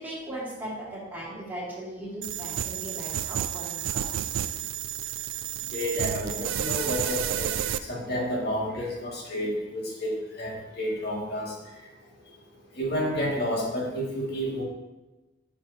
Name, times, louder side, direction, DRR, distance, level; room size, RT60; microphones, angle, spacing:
voice 1, 0.0-4.1 9.3-9.5, right 1 dB, 10° right, -8 dB, 2.3 m, -38 dB
sound 1, 2.2-7.8, right 10 dB, 75° right, 0.3 m, -31 dB
voice 2, 5.7-7.5 7.9-11.5 12.8-14.6, equal, 55° left, -4 dB, 2.1 m, -30 dB
10.5 x 5.8 x 2.8 m, 1.1 s
head